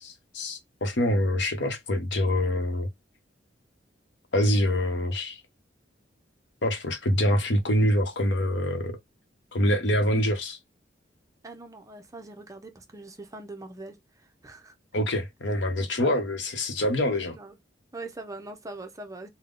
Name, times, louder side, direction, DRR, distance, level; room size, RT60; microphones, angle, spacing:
voice 1, 0.0-2.9 4.3-5.4 6.6-9.0 9.5-10.6 14.9-17.4, left 1 dB, 70° left, 0.9 m, -25 dB
voice 2, 11.4-14.7 15.8-16.3 17.3-17.6 17.9-19.3, right 2 dB, 20° right, 0.6 m, -42 dB
3.6 x 2.2 x 3.7 m
head